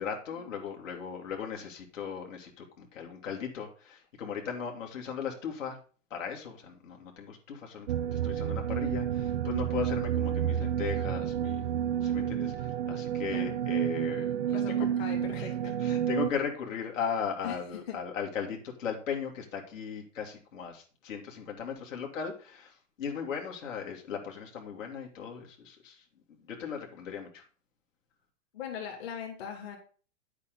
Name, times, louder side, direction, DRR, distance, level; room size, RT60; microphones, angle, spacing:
voice 1, 0.0-5.8 6.1-11.7 12.0-14.9 15.3-15.5 15.8-27.4, left 7 dB, 70° left, 1 dB, 3.2 m, -37 dB
sound 1, 7.9-16.3, right 9 dB, 50° right, 0.5 m, -30 dB
voice 2, 15.0-15.7 17.4-17.6 17.9-18.0 28.5-29.8, left 7 dB, 50° left, 2 dB, 2.8 m, -39 dB
10.5 x 8.3 x 3.9 m, 0.38 s
supercardioid pair, 175°, 39 cm